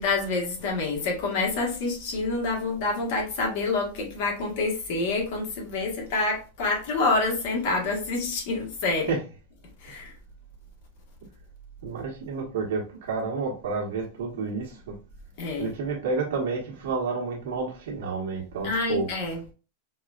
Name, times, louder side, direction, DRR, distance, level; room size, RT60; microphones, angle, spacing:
voice 1, 0.0-9.1 9.8-10.1 15.4-15.7 18.6-19.4, left 3 dB, 50° left, 1.3 m, -27 dB
voice 2, 11.8-14.9 15.6-19.1, right 4 dB, 75° right, 1.2 m, -30 dB
4.8 x 2.3 x 2.4 m
supercardioid pair, 160°, 0 cm